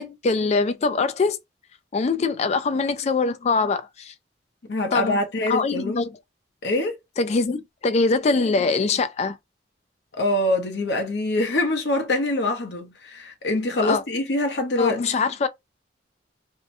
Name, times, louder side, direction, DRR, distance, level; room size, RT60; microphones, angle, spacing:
voice 1, 0.0-1.4 1.9-4.1 4.9-5.2 5.5-6.0 7.2-9.4 13.8-14.0 14.8-15.5, left 4 dB, 35° left, 0.3 m, -23 dB
voice 2, 4.7-6.0 6.6-6.9 10.1-15.0, left 2 dB, 65° left, 0.7 m, -24 dB
2.7 x 2.1 x 2.6 m
head